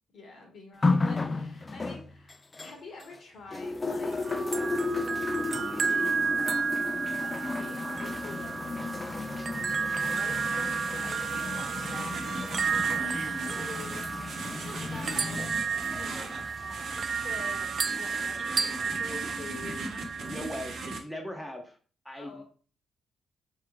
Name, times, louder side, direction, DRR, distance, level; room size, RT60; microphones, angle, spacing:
voice 1, 0.1-6.5 7.2-19.8 22.1-22.4, left 3 dB, 65° left, 1 dB, 1.5 m, -47 dB
sound 1, 0.8-3.2 3.5-18.2 19.1-19.2, left 3 dB, 30° left, 0.4 m, -34 dB
sound 2, 4.1-21.0, right 5 dB, 50° right, 0.3 m, -32 dB
sound 3, 10.0-21.0, right 2 dB, 70° right, 0.9 m, -40 dB
voice 2, 20.2-20.7 21.0-21.8 22.0-22.4, equal, ahead, 1 dB, 0.8 m, -38 dB
3.6 x 3.2 x 3.1 m, 0.41 s
cardioid pair, 80°, 0 cm